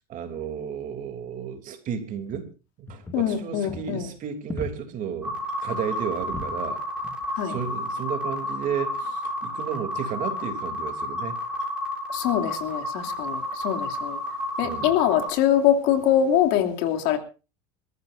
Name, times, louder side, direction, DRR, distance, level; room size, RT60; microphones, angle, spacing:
voice 1, 0.1-2.5 2.8-6.8 7.4-11.4 14.6-15.0, right 8 dB, 40° right, 3.1 m, -33 dB
sound 1, 2.3-2.4 2.9-3.4 3.7-3.9 4.5-5.0 5.3-5.5 5.9-6.6 7.0-7.3 7.5-7.7 8.5-8.7, left 1 dB, 10° left, 2.2 m, -38 dB
voice 2, 3.1-4.1 7.4-7.5 12.1-14.2 14.6-17.2, left 10 dB, 60° left, 2.9 m, -23 dB
sound 2, 5.2-15.3, left 1 dB, 5° right, 7.3 m, -31 dB
27.0 x 14.0 x 2.6 m
supercardioid pair, 125°, 20 cm